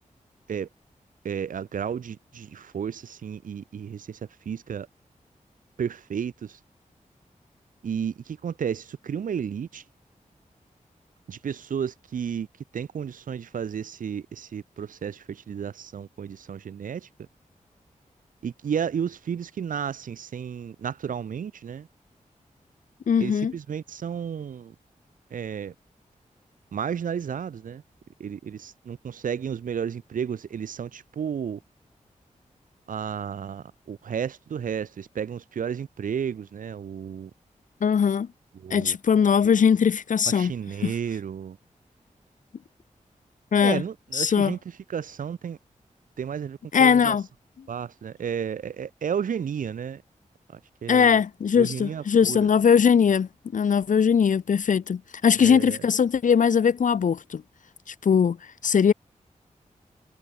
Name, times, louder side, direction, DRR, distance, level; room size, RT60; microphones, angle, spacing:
voice 1, 1.2-4.9 5.8-6.6 7.8-9.8 11.3-12.5 12.7-17.1 18.4-21.9 23.2-24.7 25.3-25.7 26.7-27.8 28.2-31.6 32.9-37.3 38.5-39.0 39.4-39.6 40.3-41.6 43.6-45.6 46.2-47.2 47.7-50.0 50.5-51.2 51.6-52.5 55.4-55.8, right 7 dB, 80° right, 0.7 m, -32 dB
voice 2, 23.1-23.5 37.8-38.3 38.7-40.5 40.8-40.9 43.5-43.8 44.1-44.6 46.7-47.2 50.9-57.4 57.9-58.4 58.6-58.9, left 7 dB, 70° left, 0.8 m, -20 dB
wide cardioid pair, 115°, 14 cm